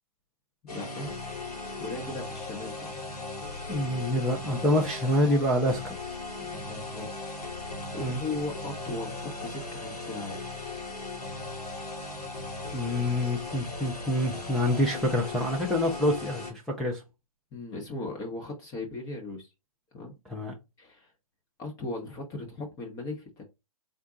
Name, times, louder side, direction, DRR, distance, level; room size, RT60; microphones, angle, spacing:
sound 1, 0.7-16.5, left 3 dB, 90° left, 1.8 m, -38 dB
voice 1, 0.7-1.1 1.8-2.9 6.4-7.1 7.4-7.7 7.9-10.4 17.5-19.5 19.9-20.1 20.8-21.1 21.6-23.4, left 2 dB, 20° left, 0.7 m, -37 dB
voice 2, 3.7-6.0 8.0-8.2 12.7-17.0 20.3-20.5, left 1 dB, ahead, 0.3 m, -26 dB
3.7 x 2.2 x 3.7 m
hypercardioid pair, 135°, 19 cm